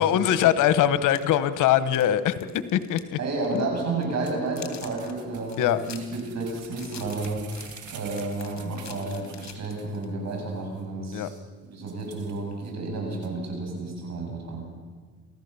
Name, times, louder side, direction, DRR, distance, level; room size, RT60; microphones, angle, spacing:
voice 1, 0.0-3.2 3.5-3.6 5.6-5.8 11.1-11.3, left 11 dB, 90° left, 13 dB, 1.2 m, -22 dB
sound 1, 1.0-3.2 3.4-3.6 4.0-10.1, left 9 dB, 65° left, 2.7 m, -46 dB
voice 2, 3.2-7.5 7.9-11.3 11.6-14.7, right 3 dB, 60° right, 1 dB, 7.8 m, -31 dB
sound 2, 4.3-10.0 10.3-10.4 10.8-10.9 11.2-11.4 11.9-12.7 13.2-13.3, right 8 dB, 80° right, 2.2 m, -47 dB
28.0 x 15.0 x 7.0 m, 1.5 s
cardioid pair, 90°, 30 cm